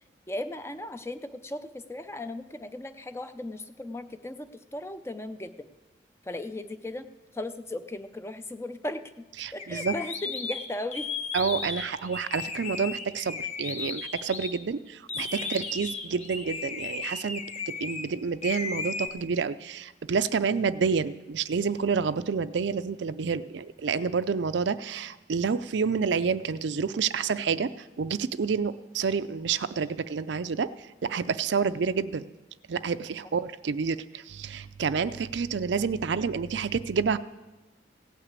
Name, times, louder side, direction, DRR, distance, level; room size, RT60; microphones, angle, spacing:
voice 1, 0.3-5.7 6.2-7.1 7.3-11.1 15.4-15.5 35.1-35.2, left 1 dB, 15° left, 10 dB, 0.5 m, -37 dB
voice 2, 9.4-9.9 11.3-27.7 28.0-32.2 32.7-37.2, right 5 dB, 70° right, 13 dB, 0.4 m, -29 dB
sound 1, 9.6-14.5 15.1-18.1 18.4-19.1, left 4 dB, 35° left, 1.0 m, -35 dB
16.5 x 5.9 x 8.2 m, 1.1 s
head